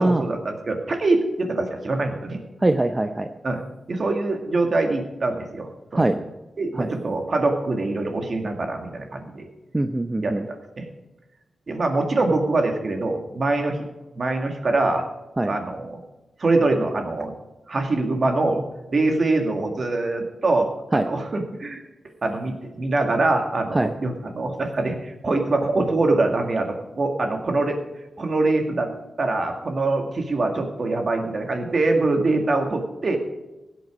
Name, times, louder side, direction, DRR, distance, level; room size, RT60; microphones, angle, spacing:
voice 1, 0.0-2.4 3.4-3.6 3.9-6.0 6.6-9.5 10.2-10.9 11.7-13.9 14.1-15.0 15.4-16.0 16.4-17.3 17.7-18.6 18.9-21.8 22.2-27.8 28.2-28.9 29.2-33.2, right 2 dB, 45° right, 4 dB, 2.0 m, -24 dB
voice 2, 2.6-3.3 5.9-6.2 6.8-6.9 9.7-10.5 15.4-15.5 20.9-21.0 23.7-23.9, right 2 dB, 20° right, 7 dB, 0.6 m, -22 dB
16.0 x 8.2 x 5.1 m, 1.1 s
wide cardioid pair, 105°, 0 cm